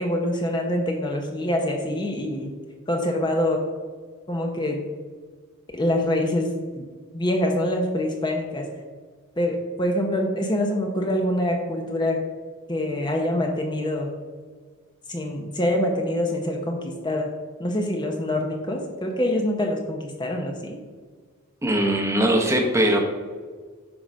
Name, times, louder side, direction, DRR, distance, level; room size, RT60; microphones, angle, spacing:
voice 1, 0.0-2.5 2.9-3.6 4.3-4.8 5.7-6.8 7.1-8.7 9.4-12.2 12.7-14.1 15.1-17.3 17.6-20.8, left 1 dB, 20° left, 2 dB, 0.7 m, -25 dB
voice 2, 21.6-23.0, right 1 dB, 15° right, 3 dB, 0.9 m, -20 dB
9.6 x 3.8 x 6.2 m, 1.5 s
head